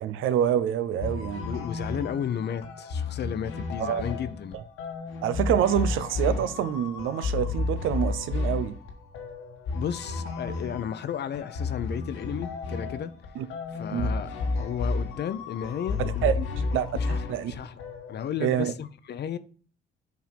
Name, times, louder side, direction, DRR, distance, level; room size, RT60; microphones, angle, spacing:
voice 1, 0.0-1.5 3.8-4.0 4.5-4.6 5.2-8.7 13.4-13.5 13.9-14.1 16.0-16.3 16.7-17.6 18.4-18.7, right 10 dB, 85° right, 0.7 m, -27 dB
sound 1, 1.0-18.3, left 3 dB, 85° left, 1.6 m, -32 dB
voice 2, 1.4-4.6 9.7-13.1 13.7-14.3 14.6-16.7 16.9-17.7 18.1-19.4, left 9 dB, 60° left, 0.7 m, -33 dB
7.3 x 3.6 x 5.8 m
cardioid pair, 90°, 20 cm